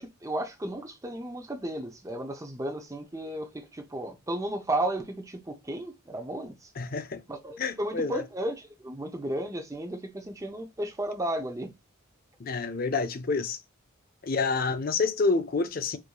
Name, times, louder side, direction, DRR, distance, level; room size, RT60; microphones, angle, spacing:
voice 1, 0.0-6.7 7.3-11.7, right 1 dB, 15° right, 0.6 m, -34 dB
voice 2, 6.8-7.2 7.6-8.2 12.4-13.6 14.2-16.0, left 4 dB, 45° left, 0.5 m, -28 dB
4.4 x 2.6 x 2.3 m
head